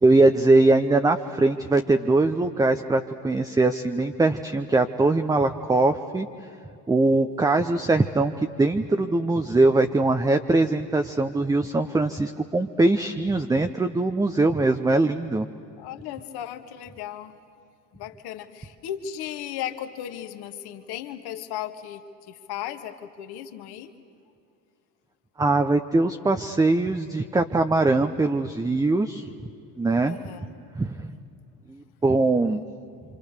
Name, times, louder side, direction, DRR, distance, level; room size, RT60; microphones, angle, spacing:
voice 1, 0.0-6.3 6.9-15.5 25.4-29.3 29.8-30.2 30.7-31.0 31.7-32.6, right 2 dB, 10° right, 6 dB, 0.8 m, -21 dB
voice 2, 15.8-17.3 17.9-22.0 22.3-23.9 30.1-30.5, left 10 dB, 50° left, 7 dB, 2.0 m, -36 dB
27.5 x 26.0 x 6.7 m, 2.7 s
hypercardioid pair, 85°, 48 cm